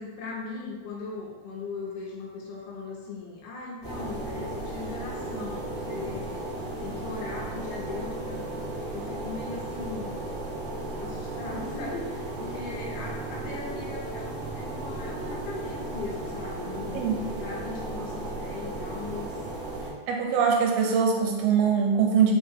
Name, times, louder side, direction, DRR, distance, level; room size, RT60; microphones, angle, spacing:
voice 1, 0.0-6.5 6.8-8.5 8.9-10.2 11.0-17.1 17.4-19.4, left 4 dB, 80° left, -3 dB, 2.7 m, -39 dB
sound 1, 3.8-19.9, right 2 dB, 65° right, 1.1 m, -35 dB
voice 2, 20.1-22.3, right 6 dB, 85° right, 1 dB, 2.5 m, -23 dB
6.2 x 2.2 x 3.4 m, 1.3 s
omnidirectional pair, 4.3 m